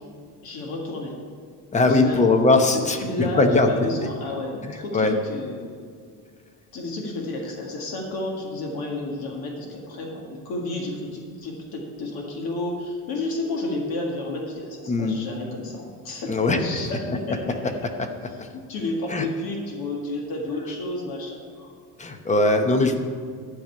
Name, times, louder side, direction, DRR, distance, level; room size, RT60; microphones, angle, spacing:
voice 1, 0.4-1.2 1.9-2.2 2.6-5.7 6.7-17.7 18.7-21.7 22.9-23.0, left 2 dB, 65° left, -1 dB, 1.9 m, -31 dB
voice 2, 1.7-3.7 4.6-5.1 14.9-15.2 16.3-16.6 18.4-18.5 19.1-19.3 22.0-23.0, left 3 dB, 20° left, 6 dB, 0.8 m, -20 dB
12.0 x 5.3 x 8.5 m, 2.1 s
cardioid pair, 155°, 40 cm